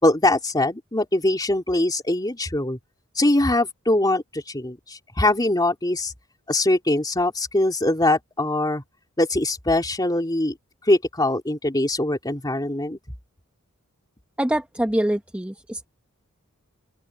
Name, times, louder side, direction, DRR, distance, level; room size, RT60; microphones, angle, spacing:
voice 1, 0.0-2.8 3.1-6.1 6.5-8.8 9.2-10.5 10.8-13.0, left 1 dB, 20° left, 3.3 m, -22 dB
voice 2, 14.4-15.9, right 1 dB, 5° right, 0.9 m, -24 dB
open air
head